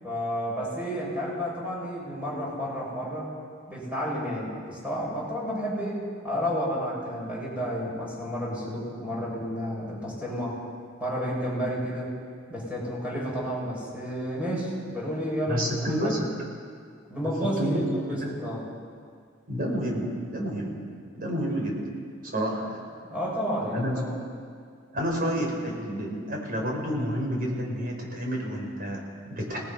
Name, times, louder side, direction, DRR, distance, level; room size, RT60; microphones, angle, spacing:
voice 1, 0.0-3.3 3.7-10.6 11.0-12.1 12.5-16.1 17.1-18.7 23.1-24.1, equal, 5° right, -5 dB, 7.4 m, -31 dB
voice 2, 15.5-16.3 17.2-17.8 18.1-18.3 19.5-20.7 21.1-21.8 22.3-22.8 23.7-24.0 24.9-29.6, equal, 45° right, 0 dB, 5.3 m, -29 dB
29.0 x 18.5 x 5.8 m, 2.1 s
head